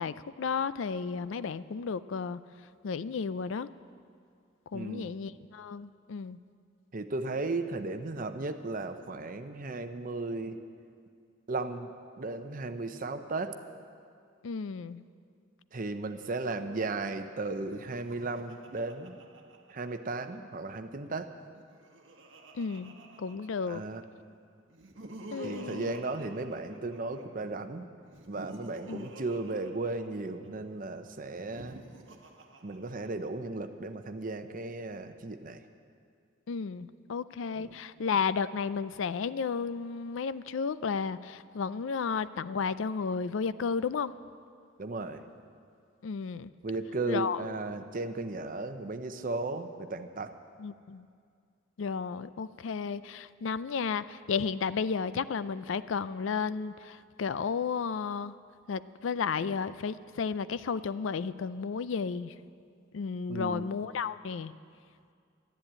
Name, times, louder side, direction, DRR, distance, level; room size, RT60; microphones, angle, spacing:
voice 1, 0.0-2.4 2.8-3.7 4.7-6.4 14.4-15.0 22.5-23.8 25.3-26.1 28.9-29.1 36.5-44.1 46.0-46.5 47.1-47.4 50.6-51.1 51.8-58.4 58.7-62.4 62.9-64.5, left 5 dB, 70° left, 15 dB, 0.4 m, -33 dB
voice 2, 4.7-5.1 6.9-10.6 11.5-11.9 12.2-13.6 15.7-19.2 19.7-21.3 23.7-24.0 25.4-27.9 28.3-31.8 32.6-35.6 37.6-37.7 44.8-45.2 46.6-50.3 63.3-63.7, right 3 dB, 45° right, 8 dB, 0.7 m, -35 dB
Laughter, 17.6-20.4 21.4-24.0 24.7-27.4 28.1-30.5 31.3-33.5, right 2 dB, 70° right, 1.1 m, -50 dB
13.0 x 10.5 x 8.7 m, 2.2 s
head